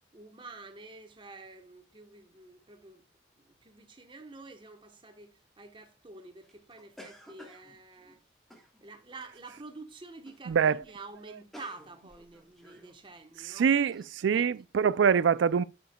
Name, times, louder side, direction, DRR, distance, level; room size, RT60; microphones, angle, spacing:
voice 1, 0.1-3.0 3.6-8.2 8.8-13.7 14.3-14.4, right 3 dB, 25° right, 1.1 m, -48 dB
sound 1, 6.4-9.1 9.6-9.9 10.2-10.5 10.8-10.9 11.1-13.0 13.4-13.5 13.9-14.1, equal, ahead, 1.4 m, -53 dB
voice 2, 10.5-10.8 13.4-15.6, right 7 dB, 80° right, 0.4 m, -24 dB
10.0 x 6.9 x 2.3 m
head